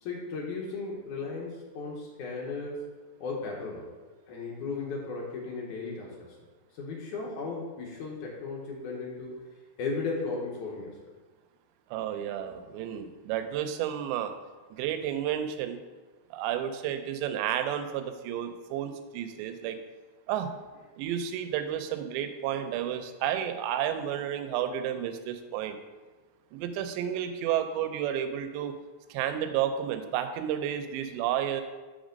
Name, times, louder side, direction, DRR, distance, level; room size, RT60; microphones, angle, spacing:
voice 1, 0.0-2.9 3.2-3.9 4.3-6.4 6.7-9.4 9.8-11.0, left 4 dB, 80° left, -3 dB, 1.7 m, -35 dB
voice 2, 11.9-14.3 14.7-15.8 16.3-19.8 20.3-20.5 21.0-25.8 26.5-28.7 29.1-31.6, right 10 dB, 80° right, 8 dB, 2.8 m, -31 dB
6.9 x 6.2 x 5.1 m, 1.3 s
omnidirectional pair, 5.2 m